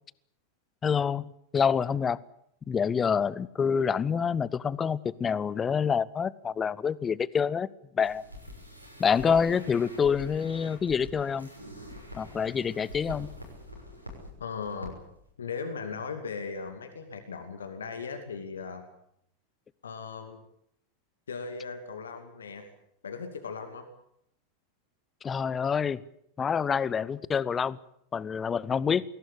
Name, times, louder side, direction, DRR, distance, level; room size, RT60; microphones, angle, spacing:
voice 1, 0.8-1.3 1.5-2.2 2.7-7.7 7.9-8.2 9.0-11.5 12.2-13.3 25.2-26.0 26.4-27.8 28.1-29.0, left 6 dB, 20° left, 21 dB, 0.9 m, -27 dB
sound 1, 8.0-14.3 14.6-14.9 15.2-15.3, left 1 dB, 90° right, 6.4 m, -45 dB
voice 2, 14.4-15.0 15.4-18.8 19.8-20.4 21.3-22.7 23.0-23.9, left 5 dB, 70° left, 7 dB, 2.6 m, -38 dB
22.0 x 17.0 x 9.9 m, 0.72 s
figure-of-eight pair, 90°, 0 cm